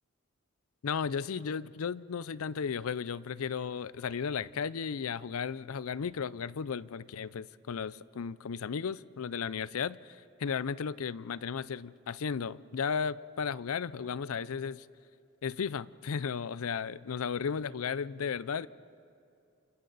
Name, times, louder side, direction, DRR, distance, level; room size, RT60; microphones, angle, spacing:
voice 1, 0.8-14.9 15.4-18.7, left 6 dB, 85° left, 19 dB, 0.5 m, -35 dB
28.5 x 28.0 x 4.0 m, 2.5 s
head